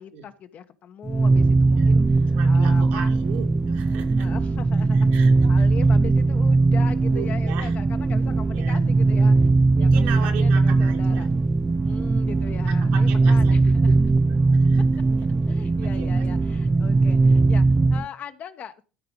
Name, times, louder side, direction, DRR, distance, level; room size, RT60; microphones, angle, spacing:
voice 1, 0.0-3.1 4.2-11.3 11.8-13.9 15.4-18.7, left 8 dB, 45° left, 1.0 m, -40 dB
sound 1, 1.1-18.1, right 3 dB, 20° right, 0.4 m, -19 dB
voice 2, 2.3-4.3 4.9-5.7 7.1-7.7 8.5-8.8 9.8-11.3 12.7-14.0 14.5-14.9 16.0-16.2, right 8 dB, 65° right, 2.0 m, -37 dB
13.5 x 4.7 x 5.2 m
hypercardioid pair, 65°, 3 cm